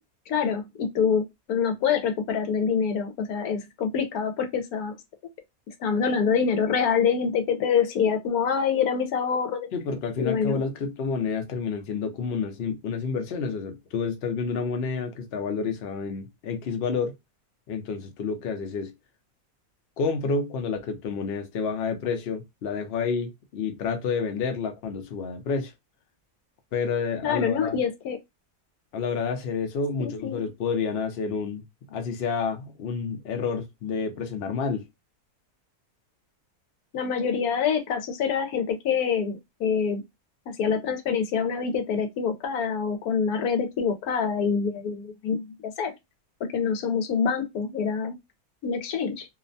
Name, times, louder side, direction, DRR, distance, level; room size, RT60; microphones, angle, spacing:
voice 1, 0.3-1.2 1.5-5.0 5.8-9.7 10.2-10.6 27.2-28.2 30.0-30.4 36.9-40.0 40.6-45.9 46.5-48.2 48.6-49.3, left 6 dB, 80° left, 1.1 m, -26 dB
voice 2, 9.7-17.1 17.7-18.9 20.0-25.7 26.7-27.8 28.9-34.8, left 5 dB, 60° left, 0.7 m, -29 dB
2.8 x 2.1 x 2.5 m
omnidirectional pair, 1.6 m